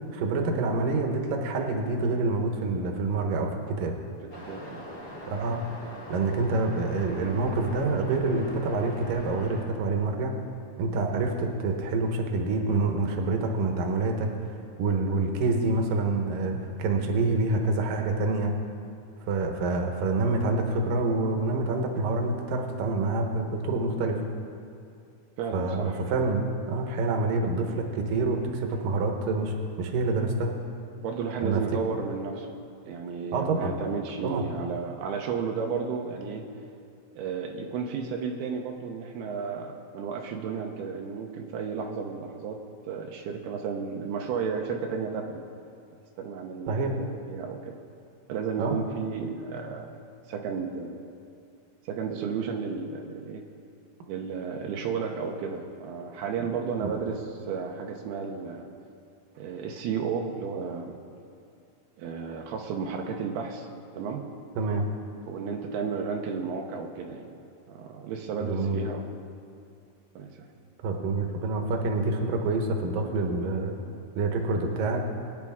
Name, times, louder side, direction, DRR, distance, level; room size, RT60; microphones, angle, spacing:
voice 1, 0.1-3.9 5.2-5.6 6.1-10.4 10.8-14.3 14.8-18.6 19.3-24.2 25.5-30.5 31.4-31.6 33.3-33.7 34.2-34.4 46.7-47.0 48.6-48.8 56.8-56.9 64.6-64.9 68.4-68.8 70.8-73.8 74.2-75.1, right 3 dB, 70° right, 3 dB, 2.7 m, -27 dB
Waves surf, 4.3-9.6, equal, 30° left, 3.1 m, -42 dB
voice 2, 4.5-4.8 25.4-26.0 31.0-32.5 32.9-36.5 37.2-42.6 42.9-45.4 46.2-47.7 48.3-50.0 50.3-51.0 51.9-53.4 54.1-58.7 59.4-61.0 62.0-63.7 63.9-64.2 65.3-67.3 67.7-69.0 70.2-70.3, right 5 dB, 85° right, 1 dB, 2.9 m, -33 dB
23.5 x 9.6 x 3.6 m, 2.4 s
omnidirectional pair, 4.4 m